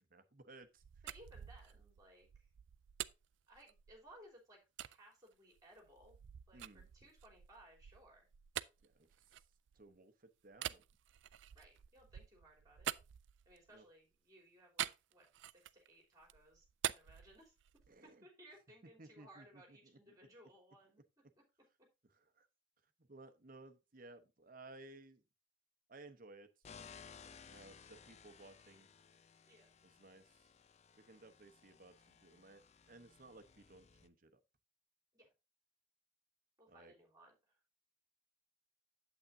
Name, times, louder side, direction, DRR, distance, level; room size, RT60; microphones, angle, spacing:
voice 1, 0.0-1.0 6.5-6.9 8.8-9.4 9.7-10.8 13.7-13.8 17.9-18.3 19.0-20.3 22.1-22.5 23.1-25.2 25.9-26.5 27.5-28.9 29.8-30.5 31.0-34.4 36.7-36.9, right 2 dB, 45° right, 0.9 m, -59 dB
sound 1, 0.8-4.2 4.8-5.0 5.5-10.0 10.5-13.8 14.8-15.9 16.2-18.0, right 11 dB, 70° right, 0.4 m, -46 dB
voice 2, 1.0-2.5 3.5-6.2 6.5-8.3 11.5-12.9 13.5-17.5 18.0-21.0 27.2-27.4 29.5-29.7 35.1-35.3 36.6-37.5, right 1 dB, 20° right, 3.4 m, -62 dB
sound 2, 26.6-34.1, left 6 dB, 35° left, 0.4 m, -59 dB
8.6 x 7.9 x 2.7 m
head